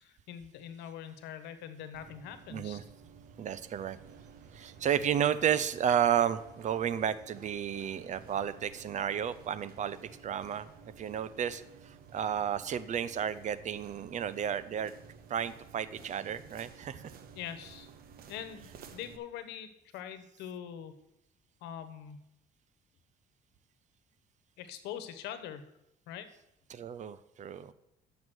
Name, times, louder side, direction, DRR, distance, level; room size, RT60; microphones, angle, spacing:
voice 1, 0.0-2.8 17.3-17.9 18.3-20.9 21.6-22.2 24.6-25.7 26.1-26.3, left 9 dB, 90° left, 10 dB, 1.2 m, -43 dB
sound 1, 1.9-19.2, right 6 dB, 60° right, 1.2 m, -53 dB
voice 2, 2.5-2.8 3.4-4.0 4.5-10.0 10.2-14.9 15.3-17.1 26.7-27.7, right 9 dB, 45° right, 14 dB, 0.7 m, -32 dB
9.4 x 7.3 x 6.3 m, 0.82 s
cardioid pair, 110°, 17 cm